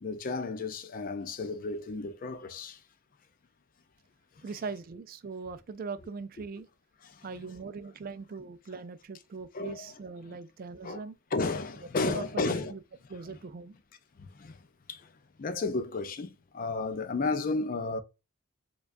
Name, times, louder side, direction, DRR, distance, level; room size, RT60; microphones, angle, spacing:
voice 1, 0.0-2.8 7.0-7.3 9.5-9.9 10.8-11.0 11.3-12.7 14.2-15.1 15.4-18.0, left 3 dB, 40° left, 0.4 m, -33 dB
voice 2, 4.4-6.7 7.2-11.2 12.0-12.8 13.1-13.8, right 4 dB, 40° right, 0.3 m, -40 dB
4.6 x 2.3 x 2.5 m
head